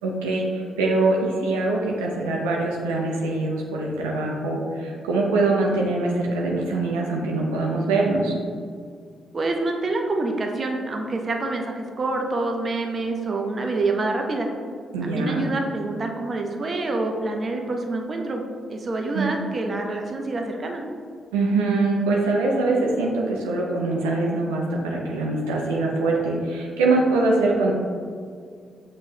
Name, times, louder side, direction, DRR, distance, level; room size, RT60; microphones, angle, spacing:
voice 1, 0.0-8.3 14.9-15.4 19.1-19.3 21.3-27.7, right 2 dB, 90° right, -2 dB, 0.5 m, -23 dB
voice 2, 9.3-14.5 15.0-18.4 18.7-20.8, right 2 dB, 45° right, 2 dB, 0.6 m, -27 dB
6.1 x 3.1 x 2.7 m, 2.1 s
hypercardioid pair, 45°, 0 cm